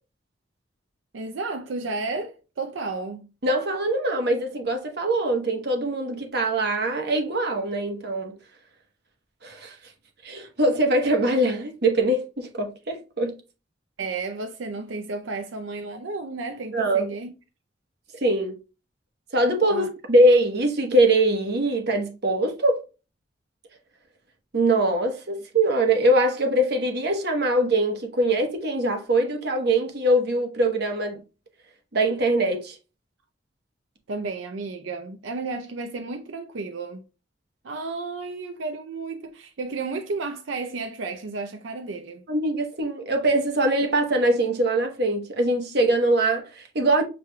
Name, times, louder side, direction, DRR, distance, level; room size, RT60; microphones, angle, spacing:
voice 1, 1.1-3.3 14.0-17.3 19.7-19.9 34.1-37.0 37.6-42.2, right 3 dB, 90° right, 0.5 m, -32 dB
voice 2, 3.4-8.4 9.4-9.7 10.2-13.3 16.7-17.1 18.2-18.6 19.3-22.8 24.5-31.2 31.9-32.8 42.3-47.0, right 1 dB, 60° right, 1.0 m, -22 dB
6.9 x 3.2 x 2.2 m
head